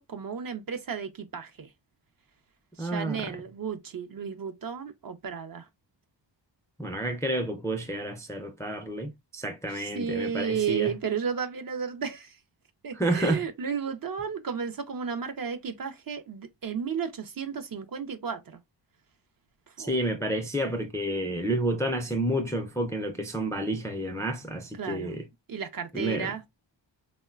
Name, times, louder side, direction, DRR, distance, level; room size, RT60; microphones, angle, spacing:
voice 1, 0.0-1.7 2.8-5.7 9.7-12.3 12.8-18.6 19.8-20.0 24.8-25.1 25.5-26.5, right 6 dB, 50° right, 0.5 m, -33 dB
voice 2, 2.8-3.3 6.8-10.9 12.9-13.4 19.8-25.3 25.9-26.3, right 1 dB, 10° left, 0.3 m, -30 dB
3.7 x 2.1 x 2.3 m
wide cardioid pair, 115°, 46 cm